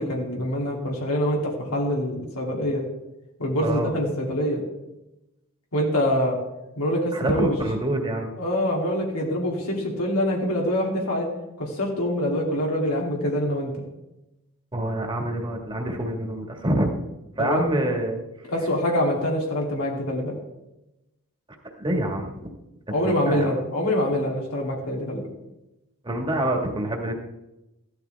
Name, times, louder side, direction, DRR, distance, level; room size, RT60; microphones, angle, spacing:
voice 1, 0.0-2.8 3.4-4.6 5.7-6.4 6.8-7.5 8.4-11.3 11.6-13.8 17.4-17.6 18.5-20.4 22.9-25.3, equal, 90° left, -1 dB, 2.7 m, -25 dB
voice 2, 7.1-8.3 14.7-17.0 17.4-18.2 21.7-22.5 23.0-23.6 26.0-27.1, right 1 dB, 20° right, 2 dB, 1.8 m, -26 dB
15.5 x 11.5 x 3.5 m, 0.95 s
head